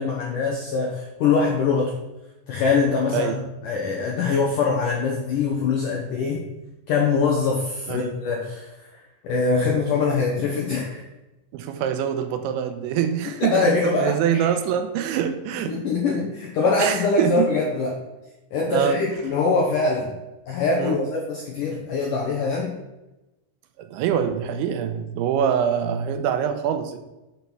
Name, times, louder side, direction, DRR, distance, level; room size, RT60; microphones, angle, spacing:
voice 1, 0.0-1.9 2.5-6.4 6.9-11.0 13.4-14.5 15.7-18.0 18.5-20.1 20.5-22.8, left 4 dB, 75° left, -2 dB, 1.9 m, -23 dB
voice 2, 11.5-15.8 16.0-16.3 16.8-17.5 18.7-19.0 20.8-21.0 23.8-27.0, right 8 dB, 85° right, 7 dB, 3.0 m, -24 dB
7.9 x 5.4 x 6.0 m, 1.0 s
omnidirectional pair, 5.4 m